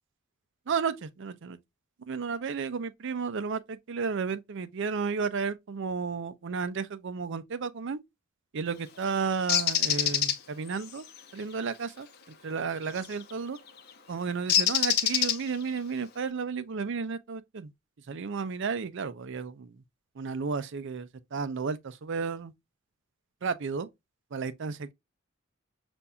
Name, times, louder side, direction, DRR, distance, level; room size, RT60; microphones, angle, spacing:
voice 1, 0.7-1.6 2.1-8.0 8.5-11.1 11.3-13.6 14.1-17.7 18.1-19.8 20.2-22.5 23.4-23.9 24.3-24.9, right 5 dB, 65° right, 0.5 m, -33 dB
Bird, 9.5-10.4 13.0-13.2 14.5-15.7, left 9 dB, 50° left, 0.8 m, -25 dB
6.9 x 2.6 x 2.2 m
head